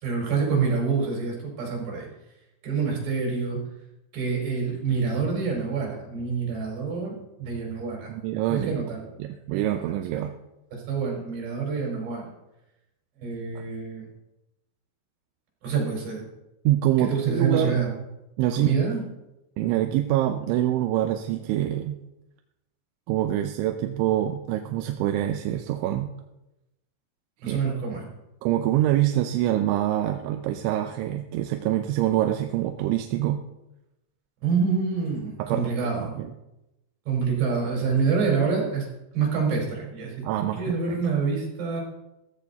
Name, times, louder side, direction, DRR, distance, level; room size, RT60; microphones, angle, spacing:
voice 1, 0.0-2.1 2.6-3.6 4.1-8.1 8.5-9.0 9.5-9.8 10.7-12.3 13.2-14.1 15.6-16.3 17.0-17.9 18.5-19.0 27.4-28.0 34.4-36.1 37.1-38.9 39.1-41.8, right 5 dB, 65° right, -2 dB, 7.0 m, -27 dB
voice 2, 8.1-8.8 9.2-10.3 13.6-13.7 16.6-17.8 18.4-18.8 19.6-22.0 23.1-26.1 27.5-27.6 28.4-33.4 35.4-36.3 40.2-41.0, right 13 dB, 90° right, 6 dB, 3.2 m, -25 dB
16.0 x 15.0 x 4.2 m, 0.92 s
omnidirectional pair, 5.3 m